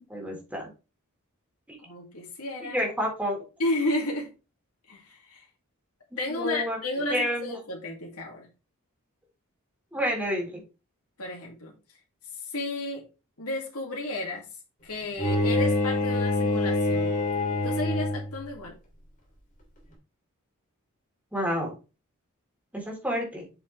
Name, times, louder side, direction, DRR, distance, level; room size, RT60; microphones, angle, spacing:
voice 1, 0.1-0.7 1.7-1.8 2.6-3.4 6.4-6.8 7.1-7.5 9.9-10.6 21.3-21.8 22.7-23.5, equal, 5° right, -1 dB, 3.8 m, -29 dB
voice 2, 1.8-2.8 3.6-4.3 4.9-5.5 6.2-8.5 11.2-11.7 12.4-13.0 13.4-14.5 14.8-17.2 17.6-18.8, left 2 dB, 90° left, -1 dB, 2.6 m, -32 dB
Bowed string instrument, 15.2-18.4, left 2 dB, 40° left, 2.9 m, -25 dB
7.8 x 6.6 x 3.4 m, 0.30 s
head